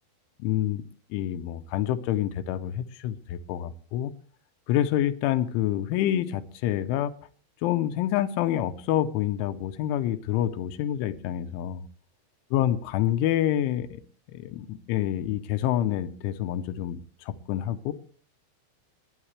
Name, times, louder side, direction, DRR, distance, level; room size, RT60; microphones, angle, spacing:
voice 1, 0.4-0.8 1.1-4.1 4.7-7.1 7.6-11.9 12.5-14.0 14.3-17.9, left 12 dB, 90° left, 3.3 m, -27 dB
21.5 x 9.8 x 3.3 m
omnidirectional pair, 5.3 m